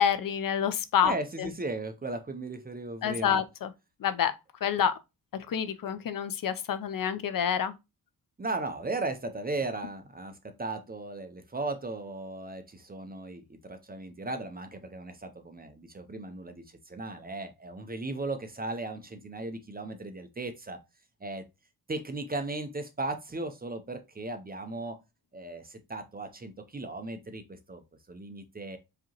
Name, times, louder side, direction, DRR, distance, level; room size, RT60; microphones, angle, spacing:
voice 1, 0.0-1.5 3.0-3.7 4.0-4.3 4.6-5.0 5.3-7.7, left 8 dB, 60° left, 0.5 m, -28 dB
voice 2, 1.0-3.4 8.4-20.8 21.2-21.5 21.9-25.0 25.3-27.8 28.1-28.8, right 2 dB, 25° right, 0.5 m, -36 dB
4.9 x 2.8 x 2.8 m
wide cardioid pair, 165°, 38 cm